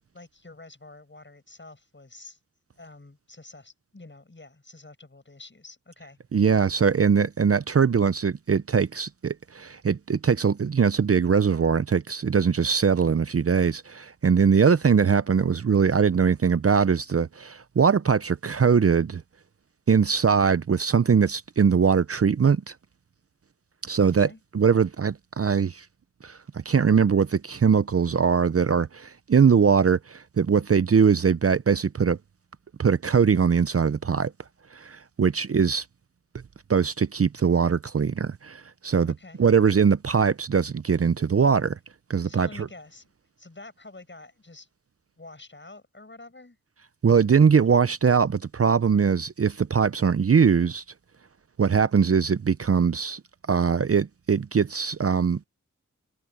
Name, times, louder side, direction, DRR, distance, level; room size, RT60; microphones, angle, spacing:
voice 1, 0.1-2.4 2.8-6.2 24.0-24.4 39.1-39.4 42.3-43.1 43.4-44.7 45.2-46.6, left 2 dB, 35° left, 7.5 m, -47 dB
voice 2, 6.3-19.2 19.9-22.7 23.8-25.9 26.2-32.2 32.8-34.3 34.7-35.8 36.7-39.1 39.4-41.8 42.1-42.7 47.0-50.8 51.6-53.2 53.5-55.4, right 6 dB, 45° right, 0.6 m, -21 dB
wide cardioid pair, 60°, 32 cm